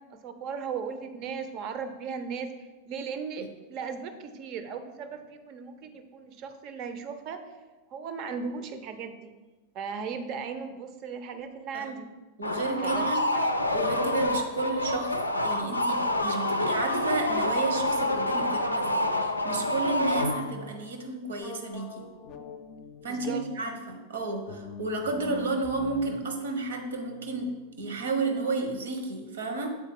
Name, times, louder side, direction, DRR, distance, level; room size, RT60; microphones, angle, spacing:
voice 1, 0.1-2.5 2.9-7.4 7.9-9.3 9.7-12.1 12.8-13.5 23.0-23.4, right 6 dB, 40° right, 9 dB, 0.6 m, -37 dB
sound 1, 12.4-20.7, left 1 dB, 85° left, 0.4 m, -27 dB
voice 2, 12.4-13.2 13.7-22.0 23.0-29.7, right 3 dB, 65° right, 5 dB, 1.0 m, -32 dB
sound 2, 21.4-23.7 24.4-27.8, left 3 dB, 35° left, 0.5 m, -45 dB
7.7 x 4.2 x 3.6 m, 1.2 s
figure-of-eight pair, 90°, 0 cm